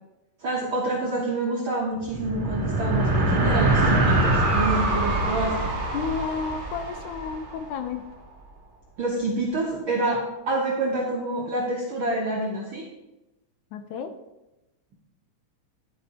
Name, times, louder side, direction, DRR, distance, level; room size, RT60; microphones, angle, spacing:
voice 1, 0.4-5.7 9.0-12.8, right 2 dB, 65° right, -3 dB, 1.3 m, -27 dB
sound 1, 2.0-7.7, right 2 dB, 35° right, 0.8 m, -24 dB
voice 2, 5.9-8.0 13.7-14.1, left 6 dB, 80° left, 8 dB, 1.9 m, -31 dB
11.0 x 8.7 x 2.9 m, 0.98 s
omnidirectional pair, 3.8 m